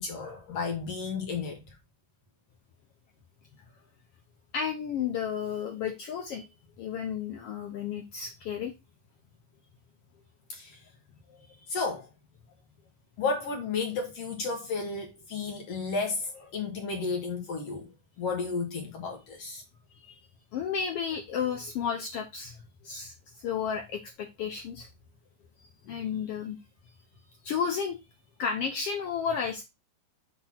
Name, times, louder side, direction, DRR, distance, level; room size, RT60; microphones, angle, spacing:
voice 1, 0.0-1.6 10.5-10.8 11.7-12.1 13.2-19.6 25.9-26.0, left 4 dB, 60° left, 2.1 m, -33 dB
voice 2, 4.5-6.5 6.8-8.7 20.0-20.2 20.5-24.9 25.9-26.6 27.4-28.0 28.4-29.6, left 7 dB, 80° left, 1.3 m, -32 dB
6.3 x 2.9 x 5.7 m
omnidirectional pair, 3.7 m